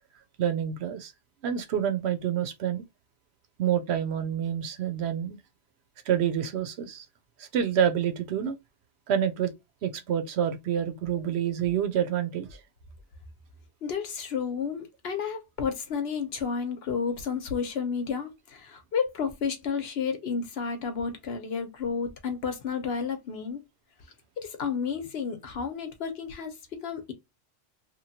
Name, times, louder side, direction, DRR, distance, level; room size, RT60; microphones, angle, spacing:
voice 1, 0.4-1.1 1.4-2.8 3.6-5.4 6.1-7.1 7.4-8.6 9.1-9.5 9.8-12.6, right 9 dB, 70° right, 0.8 m, -27 dB
voice 2, 13.8-23.6 24.4-27.1, left 6 dB, 65° left, 0.9 m, -31 dB
3.0 x 2.2 x 2.7 m
omnidirectional pair, 1.2 m